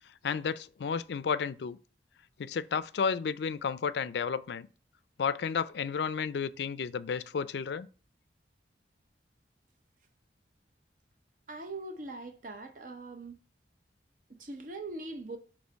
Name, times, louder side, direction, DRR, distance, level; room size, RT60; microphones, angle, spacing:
voice 1, 0.2-1.8 2.4-4.7 5.2-7.9, left 6 dB, 70° left, 0.4 m, -32 dB
voice 2, 11.5-13.4 14.3-15.4, right 2 dB, 45° right, 0.7 m, -41 dB
6.2 x 3.0 x 5.1 m
head